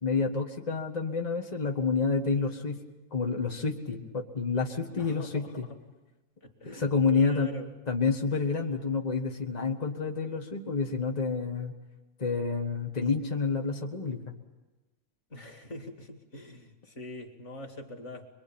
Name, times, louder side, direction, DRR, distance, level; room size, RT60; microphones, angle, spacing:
voice 1, 0.0-2.8 3.1-5.6 6.6-7.5 7.9-11.7 12.2-14.3, left 4 dB, 55° left, 2 dB, 0.4 m, -29 dB
voice 2, 4.9-5.8 6.4-7.7 15.3-18.3, left 1 dB, 25° left, 4 dB, 2.0 m, -43 dB
24.5 x 23.0 x 8.9 m, 1.1 s
omnidirectional pair, 3.6 m